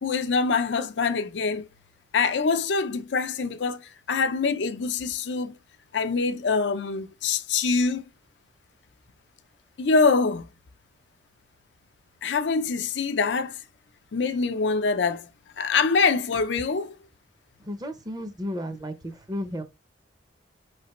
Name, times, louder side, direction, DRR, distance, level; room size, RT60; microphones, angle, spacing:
voice 1, 0.0-1.7 2.1-5.5 5.9-8.0 9.8-10.4 12.2-13.6 14.1-15.3 15.6-17.0, left 4 dB, 85° left, 0.5 m, -24 dB
voice 2, 17.6-19.6, equal, 25° right, 0.7 m, -33 dB
5.0 x 3.3 x 2.9 m
head